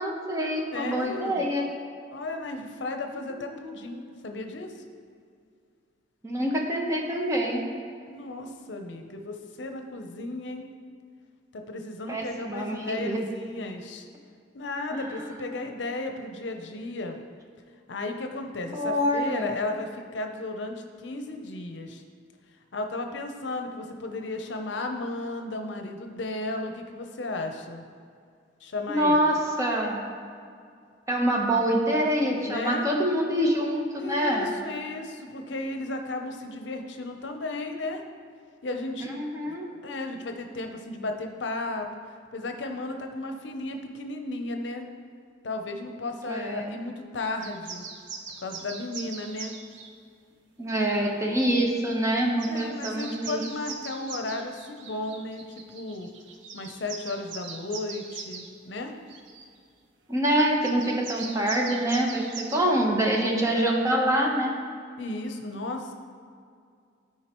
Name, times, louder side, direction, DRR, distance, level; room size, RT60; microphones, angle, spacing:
voice 1, 0.0-1.6 3.5-3.8 6.2-7.6 12.1-13.2 14.9-15.6 18.7-19.5 28.9-30.0 31.1-34.5 39.1-39.7 46.2-46.7 50.6-53.4 60.1-64.5, right 1 dB, 15° right, -1 dB, 1.0 m, -26 dB
voice 2, 0.7-1.4 2.1-4.7 8.1-10.7 11.5-14.1 14.5-17.2 17.9-22.0 22.7-27.8 28.6-29.2 32.4-32.9 34.0-38.0 38.6-39.1 39.5-41.9 42.3-44.9 45.4-47.9 48.4-49.6 52.4-55.4 55.7-56.1 56.5-59.0 65.0-65.9, left 2 dB, 70° left, 5 dB, 0.7 m, -34 dB
sound 1, 47.4-49.9 50.7-51.0 51.8-51.9 52.1-58.5 59.1-59.5 60.6-62.6, right 5 dB, 80° right, 0.7 m, -41 dB
12.5 x 4.7 x 3.0 m, 2.3 s
head